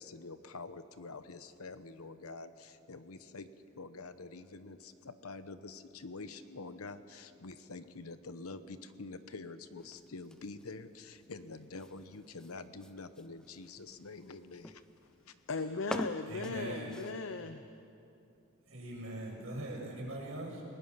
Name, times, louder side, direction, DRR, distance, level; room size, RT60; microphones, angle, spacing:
voice 1, 0.0-3.5 3.7-14.8 15.3-15.4, left 3 dB, 85° left, 11 dB, 1.0 m, -47 dB
sound 1, 9.8-17.4, equal, 5° left, 0.6 m, -47 dB
voice 2, 15.5-17.6, left 3 dB, 60° left, 9 dB, 0.7 m, -37 dB
voice 3, 16.3-17.0 18.6-20.6, right 1 dB, 70° right, -3 dB, 6.9 m, -41 dB
29.5 x 19.0 x 5.8 m, 2.7 s
head